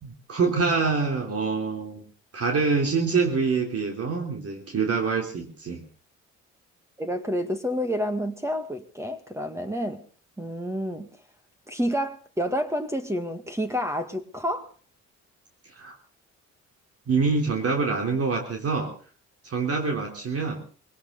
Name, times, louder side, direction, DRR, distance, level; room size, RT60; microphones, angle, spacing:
voice 1, 0.0-2.1 2.3-5.8 15.8-15.9 17.1-18.9 19.4-20.6, right 4 dB, 50° right, 2 dB, 3.4 m, -25 dB
voice 2, 7.0-10.1 10.4-11.1 11.7-14.7, equal, 10° right, 7 dB, 1.8 m, -29 dB
21.5 x 17.5 x 3.9 m, 0.39 s
cardioid pair, 90°, 30 cm